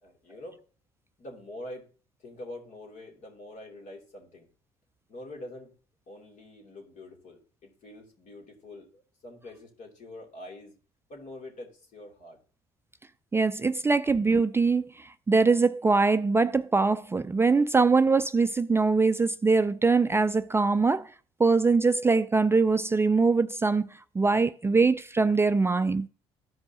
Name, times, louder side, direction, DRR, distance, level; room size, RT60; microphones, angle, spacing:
voice 1, 0.0-0.6 1.2-1.9 2.2-4.5 5.1-5.7 6.1-10.8 11.1-12.4, left 1 dB, 60° left, 2.6 m, -45 dB
voice 2, 13.3-14.9 15.3-21.1 21.4-23.9 24.2-26.1, right 4 dB, 15° right, 0.4 m, -23 dB
14.0 x 5.2 x 2.8 m
hypercardioid pair, 60°, 14 cm